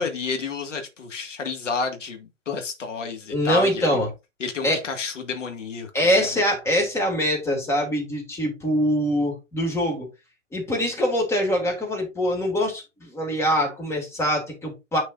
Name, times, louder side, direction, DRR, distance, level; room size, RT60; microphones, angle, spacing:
voice 1, 0.0-3.8 4.4-5.9 6.2-6.4, left 4 dB, 70° left, 2.0 m, -30 dB
voice 2, 3.3-4.1 4.6-4.8 5.9-10.1 10.5-15.0, equal, 5° left, 2.1 m, -23 dB
9.4 x 4.6 x 2.6 m
figure-of-eight pair, 125°, 38 cm